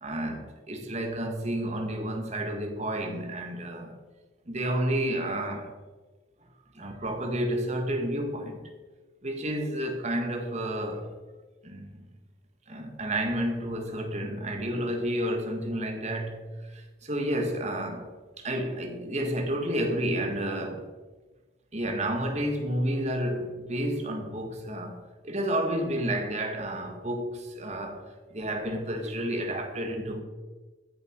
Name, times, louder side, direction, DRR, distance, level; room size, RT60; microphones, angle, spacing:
voice 1, 0.0-4.0 4.5-5.7 6.7-8.6 9.2-11.1 11.6-12.0 12.7-18.1 18.4-20.9 21.7-30.2, right 1 dB, 40° right, 2.0 m, -31 dB
15.0 x 10.5 x 4.8 m
head